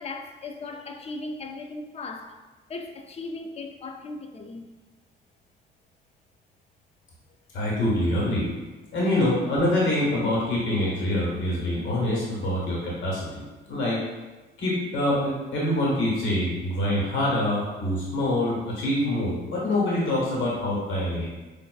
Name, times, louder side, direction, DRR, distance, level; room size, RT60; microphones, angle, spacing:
voice 1, 0.0-2.4 2.7-4.7, left 3 dB, 30° left, 0.4 m, -37 dB
voice 2, 7.5-8.5 8.9-13.4 13.7-14.0 14.6-21.3, left 1 dB, 80° left, 1.3 m, -25 dB
4.4 x 2.5 x 2.3 m
cardioid pair, 90°, 20 cm